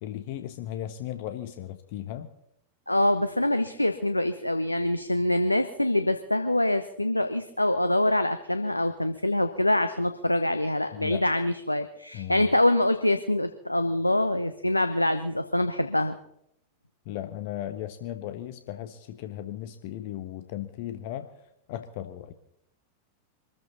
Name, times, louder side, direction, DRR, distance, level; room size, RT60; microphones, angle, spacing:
voice 1, 0.0-2.3 10.9-11.2 12.1-12.5 17.0-21.3 21.7-22.3, left 12 dB, 50° left, 9 dB, 1.2 m, -36 dB
voice 2, 2.9-16.2, left 1 dB, 85° left, 9 dB, 0.9 m, -25 dB
25.0 x 14.0 x 4.1 m, 0.75 s
figure-of-eight pair, 90°, 0 cm